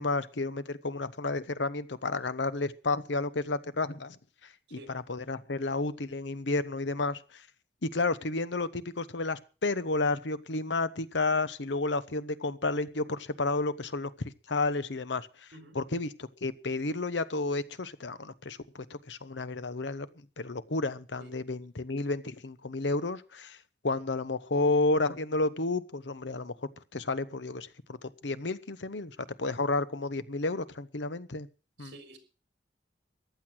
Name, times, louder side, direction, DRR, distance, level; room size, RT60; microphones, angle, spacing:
voice 1, 0.0-4.2 4.7-7.4 7.8-14.1 14.5-15.5 15.7-20.1 20.4-23.6 23.8-26.5 26.9-31.5 31.8-31.9, left 3 dB, 75° left, 1.0 m, -31 dB
voice 2, 31.8-32.2, right 1 dB, 65° right, 4.0 m, -49 dB
15.0 x 10.5 x 6.2 m
head